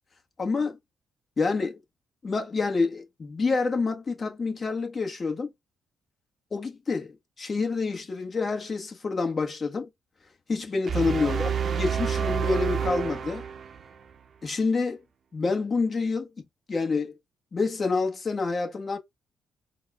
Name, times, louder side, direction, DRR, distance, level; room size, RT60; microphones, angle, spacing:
voice 1, 0.4-0.8 1.4-1.8 2.2-5.5 6.5-9.9 10.5-13.4 14.4-15.0 15.3-16.3 16.7-17.1 17.5-19.0, left 4 dB, 40° left, 1.3 m, -27 dB
sound 1, 10.9-14.1, right 7 dB, 55° right, 0.6 m, -28 dB
4.2 x 2.3 x 3.5 m
hypercardioid pair, 50°, 0 cm